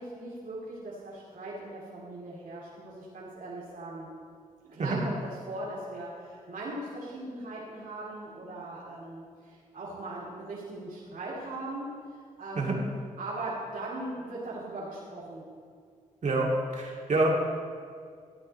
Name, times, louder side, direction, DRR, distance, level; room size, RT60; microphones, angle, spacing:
voice 1, 0.0-4.1 4.6-11.9 12.4-12.9 13.2-15.4, right 2 dB, 75° right, -7 dB, 2.7 m, -39 dB
voice 2, 16.7-17.3, right 3 dB, 55° right, -1 dB, 2.2 m, -27 dB
13.5 x 8.9 x 4.3 m, 2.2 s
cardioid pair, 65°, 14 cm